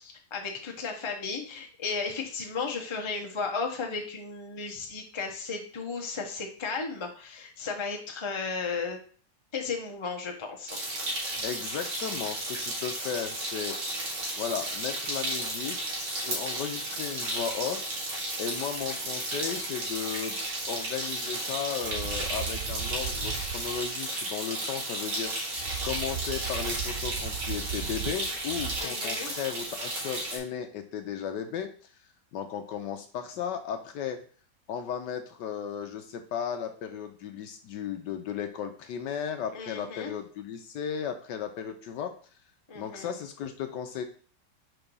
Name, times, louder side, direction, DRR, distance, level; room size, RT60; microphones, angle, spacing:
voice 1, 0.0-9.0 9.5-10.8 28.8-29.3 39.5-40.1 42.7-43.1, left 4 dB, 35° left, 2 dB, 0.4 m, -34 dB
sound 1, 10.7-30.4, right 1 dB, 90° right, 2.7 m, -33 dB
voice 2, 11.4-13.8 14.4-15.8 16.2-18.1 18.4-20.4 20.7-25.6 25.8-31.9 32.3-34.2 34.7-42.1 42.7-44.0, left 8 dB, 70° left, 6 dB, 1.1 m, -35 dB
sound 2, 21.6-21.7 21.8-23.8 25.6-28.8, right 10 dB, 75° right, 0.9 m, -37 dB
4.6 x 3.9 x 5.3 m, 0.42 s
omnidirectional pair, 2.2 m